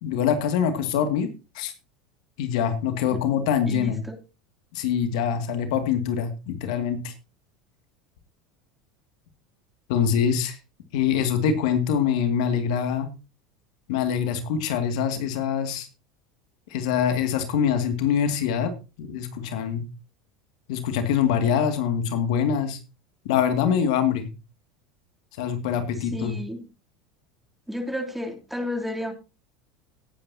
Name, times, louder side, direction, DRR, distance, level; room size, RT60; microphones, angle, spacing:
voice 1, 0.0-1.3 1.6-1.7 2.4-4.0 4.7-7.1 9.9-10.6 10.9-13.1 13.9-15.9 16.7-18.7 19.0-19.8 20.7-22.8 23.3-24.3 25.4-26.4, left 8 dB, 70° left, 8 dB, 2.2 m, -24 dB
voice 2, 3.7-4.2 26.0-26.7 27.7-29.1, left 1 dB, 5° right, 3 dB, 3.1 m, -32 dB
18.0 x 9.2 x 2.8 m, 0.29 s
hypercardioid pair, 85°, 4 cm